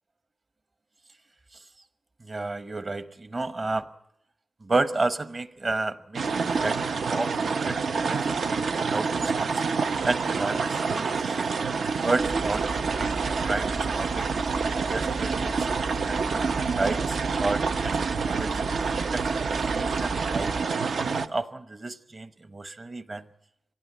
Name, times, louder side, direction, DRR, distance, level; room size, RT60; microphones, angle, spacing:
voice 1, 2.2-3.9 4.6-9.5 10.0-11.5 12.0-14.2 14.7-15.5 16.0-16.4 16.8-18.6 19.0-20.5 21.0-23.2, right 3 dB, 30° right, 12 dB, 1.0 m, -32 dB
sound 1, 6.1-21.3, right 5 dB, 75° right, 0.8 m, -27 dB
sound 2, 12.2-20.6, right 2 dB, 55° right, 1.5 m, -36 dB
25.0 x 17.5 x 9.4 m, 0.77 s
wide cardioid pair, 180°, 0 cm